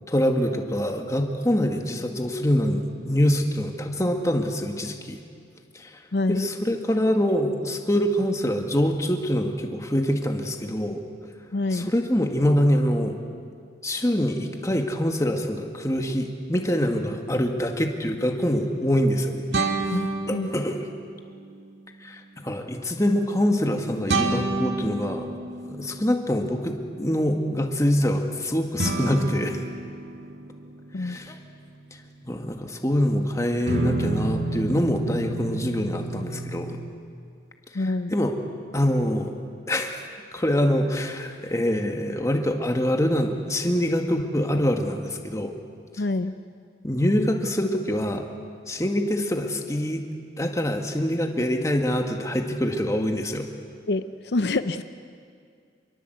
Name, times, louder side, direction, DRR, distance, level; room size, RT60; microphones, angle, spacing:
voice 1, 0.1-5.2 5.7-5.9 6.3-11.0 11.7-13.2 13.8-20.0 20.3-20.9 22.0-25.4 25.7-29.6 31.0-31.4 32.2-36.8 37.7-38.4 38.7-39.3 39.7-40.0 40.3-45.6 46.8-48.2 48.7-50.0 50.4-53.5, equal, 15° left, 3 dB, 1.9 m, -25 dB
voice 2, 6.1-6.5 11.5-11.9 19.9-20.5 30.9-31.2 37.7-38.2 46.0-46.3 53.9-54.8, left 2 dB, 70° left, 11 dB, 0.6 m, -26 dB
sound 1, 17.6-17.7 19.5-21.2 24.1-26.5 28.8-33.1 33.7-36.9, right 2 dB, 80° right, 2.3 m, -30 dB
26.5 x 22.5 x 8.0 m, 2.2 s
head